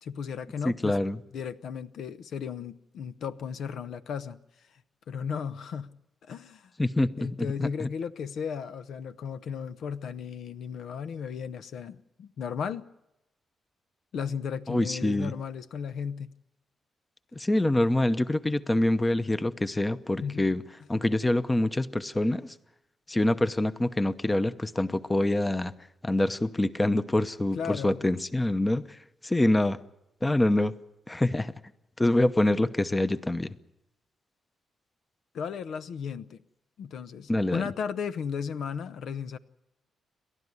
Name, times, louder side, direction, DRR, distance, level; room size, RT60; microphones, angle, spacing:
voice 1, 0.0-1.0 1.3-4.4 5.1-5.9 6.2-6.7 7.2-12.9 14.1-16.3 20.2-20.5 27.6-28.0 35.3-36.4 36.8-39.4, left 7 dB, 75° left, 0.8 m, -35 dB
voice 2, 0.6-1.2 6.8-7.3 7.6-7.9 14.7-15.3 17.4-20.6 20.9-22.5 23.1-25.7 26.0-29.8 30.2-30.7 31.1-31.5 32.0-33.5 37.3-37.6, left 1 dB, 15° left, 0.8 m, -25 dB
29.5 x 12.5 x 9.7 m
cardioid pair, 100°, 0 cm